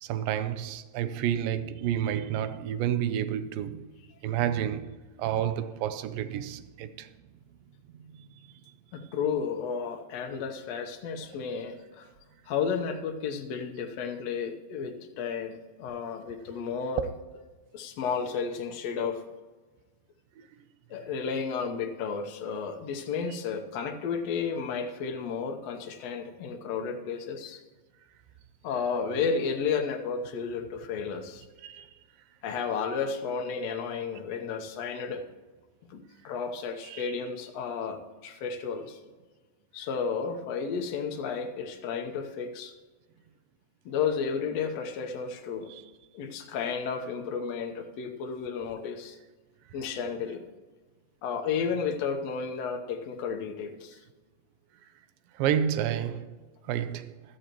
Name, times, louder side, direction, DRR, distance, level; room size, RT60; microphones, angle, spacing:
voice 1, 0.0-3.9 4.2-7.1 8.0-8.3 16.9-17.0 18.1-18.2 20.4-20.5 23.3-23.4 31.6-31.9 36.9-37.2 45.6-45.9 55.3-56.4 56.6-57.2, right 10 dB, 85° right, 2.3 m, -30 dB
voice 2, 8.9-12.1 12.5-17.0 17.7-19.2 20.9-27.6 28.6-31.4 32.4-35.2 35.9-39.0 39.7-42.7 43.8-45.7 46.1-49.2 49.7-50.4 51.2-54.0, left 6 dB, 65° left, 1.7 m, -32 dB
15.5 x 12.5 x 3.0 m
omnidirectional pair, 4.0 m